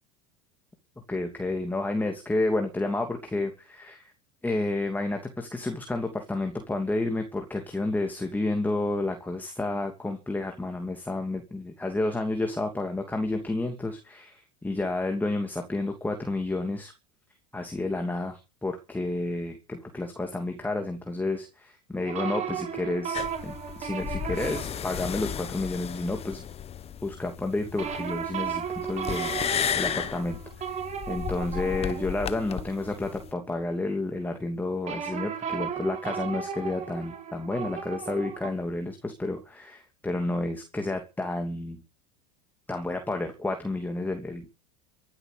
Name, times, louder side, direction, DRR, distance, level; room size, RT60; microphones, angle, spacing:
voice 1, 1.1-4.1 4.4-16.9 17.5-26.4 27.0-29.3 29.8-30.8 31.1-41.8 42.7-44.5, left 2 dB, 10° left, 4 dB, 2.8 m, -30 dB
sound 1, 22.1-25.5 27.8-33.5 34.8-38.5, right 7 dB, 35° right, 4.9 m, -35 dB
sound 2, 23.1-33.3, left 9 dB, 30° left, 1.3 m, -34 dB
15.0 x 12.0 x 7.0 m, 0.31 s
supercardioid pair, 105°, 20 cm